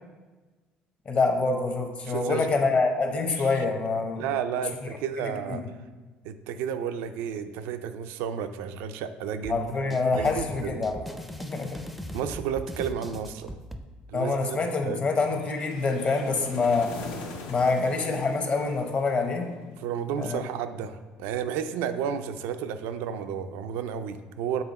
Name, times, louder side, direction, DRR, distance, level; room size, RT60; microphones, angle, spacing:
voice 1, 1.0-4.2 5.5-5.6 9.5-11.0 11.4-11.8 14.1-16.9 17.5-19.4 20.2-20.4, left 3 dB, 40° left, 4 dB, 1.0 m, -26 dB
voice 2, 2.0-2.5 3.4-3.5 4.2-5.6 6.2-9.7 10.1-10.8 12.1-13.5 14.1-15.1 19.7-24.6, right 8 dB, 85° right, 10 dB, 0.4 m, -32 dB
sound 1, 9.4-13.8, equal, ahead, 0.4 m, -40 dB
sound 2, 15.3-19.6, left 3 dB, 90° left, 0.7 m, -42 dB
6.9 x 3.5 x 4.1 m, 1.3 s
supercardioid pair, 90°, 4 cm